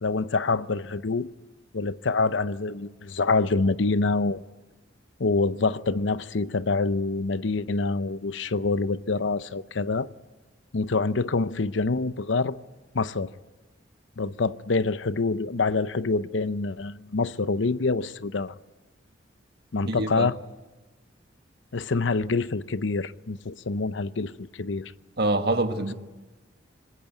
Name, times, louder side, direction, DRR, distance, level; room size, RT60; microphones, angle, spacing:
voice 1, 0.0-1.3 1.7-4.4 5.2-10.1 10.7-12.6 12.9-13.3 14.2-18.6 19.7-20.4 21.7-24.9, left 3 dB, 80° left, 0.7 m, -26 dB
voice 2, 19.9-20.3 25.2-25.9, right 2 dB, 60° right, 1.7 m, -25 dB
26.5 x 20.5 x 9.3 m
head